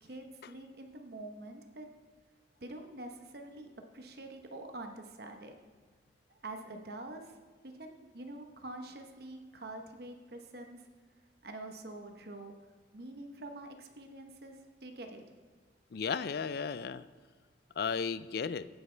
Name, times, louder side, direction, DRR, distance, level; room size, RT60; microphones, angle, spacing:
voice 1, 0.0-1.9 2.6-3.7 3.9-5.5 6.3-7.4 7.6-10.8 11.4-12.6 12.9-14.6 14.8-15.2, right 2 dB, 55° right, 4 dB, 0.9 m, -46 dB
voice 2, 15.9-17.0 17.8-18.7, left 6 dB, 55° left, 16 dB, 0.4 m, -34 dB
16.0 x 9.3 x 3.3 m, 1.5 s
head